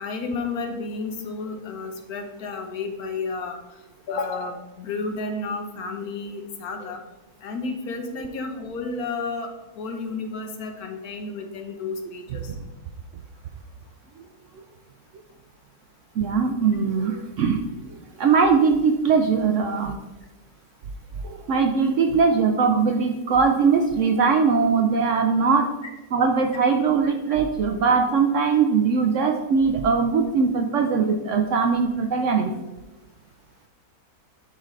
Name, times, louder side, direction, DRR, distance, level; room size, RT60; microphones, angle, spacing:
voice 1, 0.0-3.6 4.1-7.0 7.4-9.5 9.8-12.5 27.3-27.4, left 3 dB, 70° left, 4 dB, 1.3 m, -31 dB
voice 2, 16.2-17.6 18.2-20.0 21.2-25.7 26.1-32.5, right 5 dB, 70° right, 4 dB, 0.7 m, -21 dB
11.0 x 3.8 x 3.2 m, 1.1 s
omnidirectional pair, 1.7 m